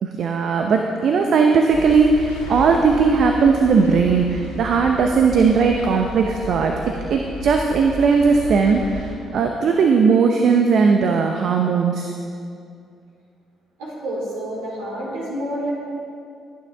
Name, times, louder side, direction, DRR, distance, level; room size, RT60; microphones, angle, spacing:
voice 1, 0.0-6.7 7.1-12.1, right 5 dB, 55° right, 3 dB, 0.8 m, -18 dB
sound 1, 1.7-9.1, left 1 dB, 85° left, 2.7 m, -34 dB
voice 2, 13.8-15.7, right 1 dB, 70° right, -5 dB, 3.7 m, -28 dB
20.5 x 9.4 x 3.6 m, 2.4 s
figure-of-eight pair, 45°, 0 cm